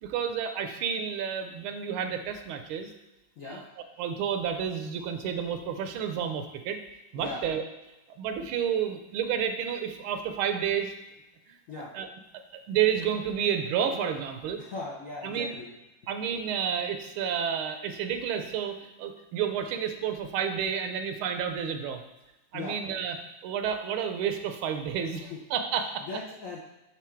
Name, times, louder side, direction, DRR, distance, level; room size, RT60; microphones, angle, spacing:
voice 1, 0.0-2.9 3.4-3.6 4.0-6.8 7.1-7.6 8.2-10.9 11.5-11.6 11.9-12.1 12.3-14.6 15.2-15.5 16.1-22.0 22.5-23.2 23.4-26.1, right 8 dB, 85° right, 7 dB, 1.5 m, -30 dB
voice 2, 14.6-15.7 22.5-22.8 25.1-25.4 26.0-26.6, left 3 dB, 65° left, -3 dB, 0.8 m, -38 dB
6.1 x 3.6 x 4.4 m, 1.0 s
omnidirectional pair, 2.3 m